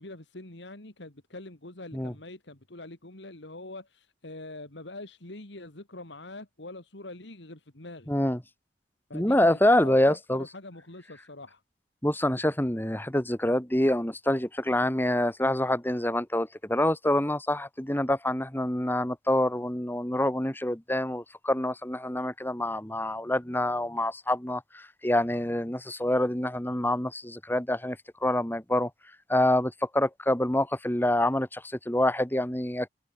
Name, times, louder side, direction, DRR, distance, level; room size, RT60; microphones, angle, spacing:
voice 1, 0.0-8.1 9.1-11.6, left 2 dB, 70° left, 2.5 m, -44 dB
voice 2, 8.1-8.4 9.1-10.4 12.0-28.9 29.3-32.9, left 1 dB, 10° left, 1.8 m, -26 dB
head